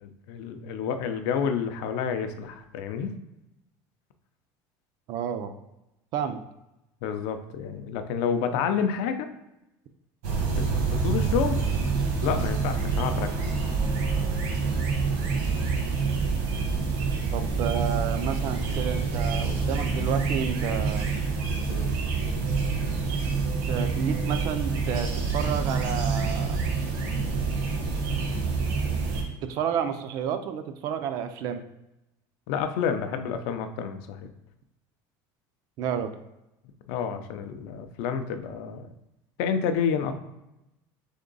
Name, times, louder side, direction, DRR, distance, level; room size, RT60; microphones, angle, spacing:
voice 1, 0.0-3.1 7.0-9.3 10.6-11.6 12.2-13.3 21.7-21.9 32.5-34.3 36.9-38.9 39.4-40.2, left 7 dB, 65° left, 8 dB, 0.5 m, -29 dB
voice 2, 5.1-5.5 6.1-6.4 17.3-21.1 23.7-26.6 29.4-31.6 35.8-36.1, right 8 dB, 45° right, 9 dB, 0.3 m, -30 dB
sound 1, 10.2-29.2, right 4 dB, 65° right, 1.0 m, -27 dB
3.7 x 3.5 x 3.9 m, 0.91 s
cardioid pair, 180°, 9 cm